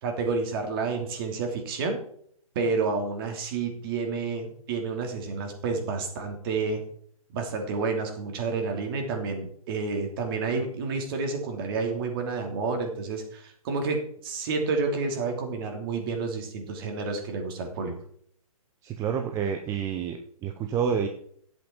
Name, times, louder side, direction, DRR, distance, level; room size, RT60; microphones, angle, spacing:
voice 1, 0.0-2.0 2.5-6.8 7.3-17.9, right 4 dB, 40° right, 3 dB, 2.8 m, -30 dB
voice 2, 18.8-21.1, right 7 dB, 15° right, 5 dB, 0.7 m, -29 dB
11.5 x 8.1 x 4.4 m, 0.62 s
figure-of-eight pair, 135°, 19 cm